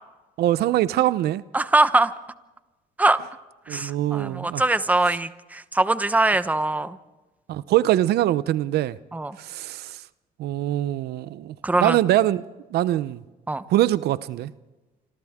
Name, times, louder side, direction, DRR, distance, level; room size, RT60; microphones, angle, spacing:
voice 1, 0.4-1.4 3.7-4.6 7.5-9.0 9.4-10.0 10.4-12.4 12.7-13.2 13.7-14.5, right 14 dB, 75° right, 0.7 m, -23 dB
voice 2, 1.5-2.1 3.0-3.2 3.7-7.0 9.1-9.4 11.6-12.0 13.5-13.6, right 2 dB, 10° right, 0.9 m, -22 dB
27.5 x 26.0 x 3.6 m
cardioid pair, 110°, 17 cm